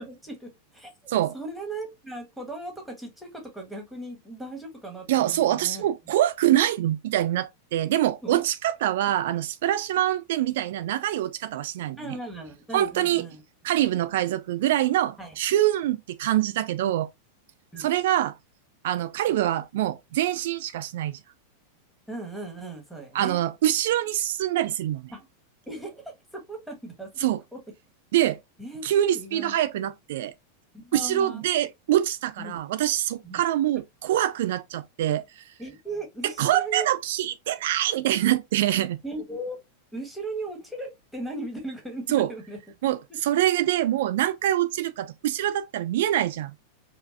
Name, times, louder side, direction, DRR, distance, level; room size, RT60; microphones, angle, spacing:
voice 1, 0.0-5.8 8.2-8.4 12.0-13.4 15.2-15.3 16.8-16.9 17.7-17.9 22.1-23.4 25.1-25.3 25.7-27.2 27.5-27.6 28.6-28.8 29.1-29.5 30.7-31.4 32.4-32.6 33.2-33.4 35.6-36.9 39.0-39.6 39.9-42.6, right 2 dB, ahead, 1.5 m, -37 dB
voice 2, 5.1-12.2 12.7-13.3 13.6-17.1 17.8-18.4 18.8-21.2 23.1-25.1 27.2-27.4 28.1-28.4 28.8-30.3 30.9-35.4 36.4-39.0 42.1-42.3 42.8-46.6, right 13 dB, 55° right, 0.3 m, -25 dB
5.1 x 2.4 x 2.6 m
figure-of-eight pair, 90°, 0 cm